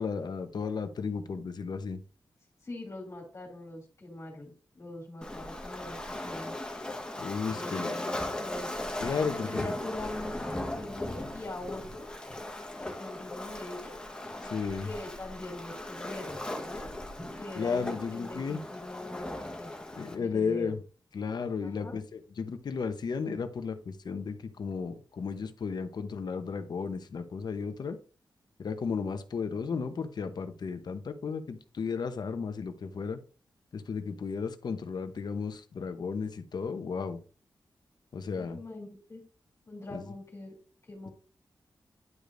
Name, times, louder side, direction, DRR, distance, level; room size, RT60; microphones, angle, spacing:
voice 1, 0.0-2.0 7.2-7.9 9.0-9.6 14.4-14.9 17.6-18.6 20.0-20.8 21.1-28.0 28.6-33.2 33.7-37.2 38.1-38.6 39.9-40.0, left 5 dB, 65° left, 0.8 m, -34 dB
voice 2, 2.6-6.0 6.2-6.6 7.5-8.7 9.4-12.1 12.8-14.0 14.8-16.9 17.4-19.7 20.0-20.8 21.6-21.9 38.3-39.2 39.7-40.5 40.9-41.1, left 1 dB, 40° left, 2.6 m, -43 dB
Waves surf, 5.2-20.1, left 1 dB, 10° left, 1.2 m, -38 dB
11.0 x 5.0 x 2.6 m
wide cardioid pair, 135°, 8 cm